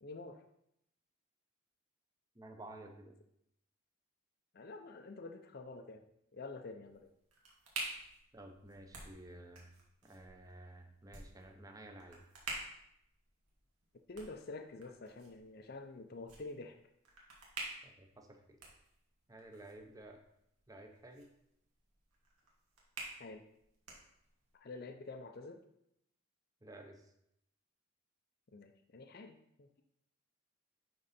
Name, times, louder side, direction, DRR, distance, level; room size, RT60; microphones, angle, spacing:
voice 1, 0.0-0.4 4.5-6.0 6.3-7.1 14.1-16.8 23.2-23.4 24.6-25.6 28.5-29.8, left 3 dB, 45° left, 5 dB, 0.5 m, -48 dB
voice 2, 2.3-3.1 8.3-9.7 10.0-12.2 17.8-18.6 19.3-20.2 20.7-21.3 26.6-27.1, right 1 dB, 15° right, 4 dB, 0.7 m, -53 dB
sound 1, 6.8-24.6, right 3 dB, 90° right, 2.1 m, -50 dB
10.5 x 3.8 x 4.2 m, 0.77 s
head